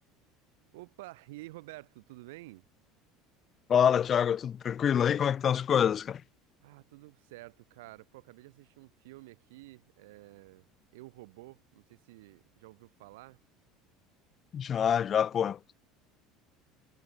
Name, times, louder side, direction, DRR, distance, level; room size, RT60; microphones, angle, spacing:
voice 1, 0.7-2.6 6.6-13.4, right 20 dB, 85° right, 6.3 m, -50 dB
voice 2, 3.7-6.2 14.5-15.7, left 8 dB, 40° left, 0.4 m, -26 dB
supercardioid pair, 105°, 0 cm